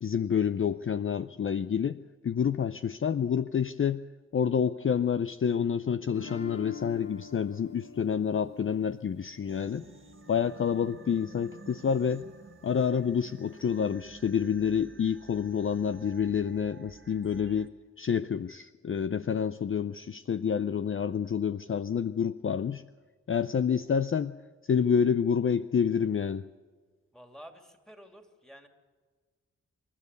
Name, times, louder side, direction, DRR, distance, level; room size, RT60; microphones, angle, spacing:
voice 1, 0.0-4.0 4.3-9.8 10.3-12.3 12.6-17.7 18.0-22.8 23.3-24.4 24.6-26.4, left 7 dB, 45° left, 12 dB, 0.5 m, -28 dB
sound 1, 6.1-11.1, left 4 dB, 60° left, 2.6 m, -47 dB
sound 2, 9.5-17.7, right 4 dB, 40° right, 1.4 m, -51 dB
voice 2, 27.1-28.7, equal, ahead, 4 dB, 2.9 m, -50 dB
27.0 x 12.5 x 8.3 m, 1.5 s
cardioid pair, 75°, 30 cm